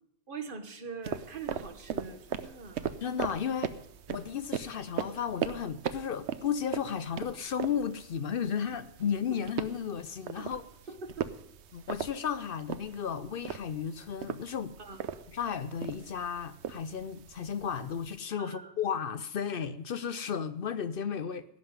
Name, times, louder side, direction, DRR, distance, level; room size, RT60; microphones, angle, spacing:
voice 1, 0.3-2.9 10.4-10.5 10.9-11.3 14.8-15.2 18.4-18.7, right 4 dB, 55° right, 1.3 m, -43 dB
sound 1, 1.0-18.2, right 8 dB, 85° right, 1.0 m, -39 dB
voice 2, 3.0-3.8 4.1-10.7 11.7-14.8 15.3-21.5, left 7 dB, 60° left, 0.8 m, -34 dB
16.5 x 5.7 x 9.4 m
omnidirectional pair, 1.1 m